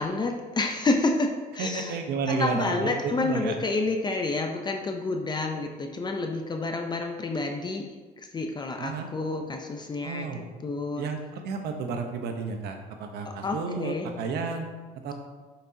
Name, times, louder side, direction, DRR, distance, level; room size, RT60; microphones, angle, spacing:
voice 1, 0.0-2.0 2.3-7.9 8.2-10.3 10.6-11.0 13.3-14.1, left 3 dB, 25° left, 3 dB, 0.5 m, -29 dB
voice 2, 1.6-3.6 8.8-9.1 10.0-10.4 11.0-14.7 15.0-15.1, right 4 dB, 75° right, 4 dB, 1.0 m, -32 dB
7.0 x 6.0 x 2.8 m, 1.4 s
cardioid pair, 110°, 17 cm